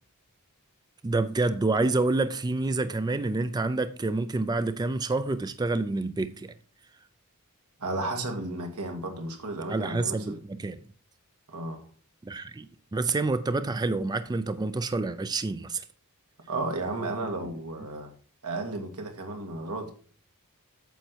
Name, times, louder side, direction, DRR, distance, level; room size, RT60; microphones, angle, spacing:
voice 1, 1.0-6.5 9.7-10.8 12.2-15.8, right 3 dB, 20° right, 0.4 m, -28 dB
voice 2, 7.8-10.4 11.5-11.9 16.5-18.1 18.4-19.9, right 2 dB, 85° right, 1.9 m, -33 dB
9.1 x 6.7 x 4.5 m
head